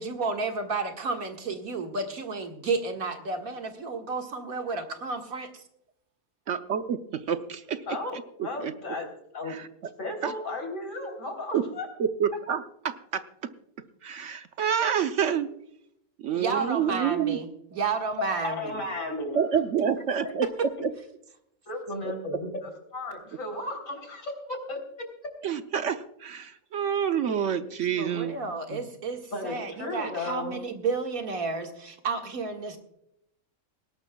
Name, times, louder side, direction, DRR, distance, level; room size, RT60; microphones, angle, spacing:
voice 1, 0.0-5.6 16.4-18.7 28.0-32.8, right 4 dB, 80° right, 3 dB, 2.2 m, -31 dB
voice 2, 6.5-7.0 7.3-7.8 8.1-8.7 9.5-9.7 10.2-10.3 11.5-11.6 12.2-13.2 14.0-15.5 16.2-17.4 19.3-20.9 25.4-28.4 28.7-28.8, right 8 dB, 65° right, 9 dB, 1.0 m, -28 dB
voice 3, 7.9-9.1 9.3-9.6 10.0-11.9 18.2-19.4 21.7-24.8 29.3-30.6, left 2 dB, 70° left, 3 dB, 3.9 m, -34 dB
20.0 x 18.0 x 2.3 m, 0.77 s
omnidirectional pair, 1.5 m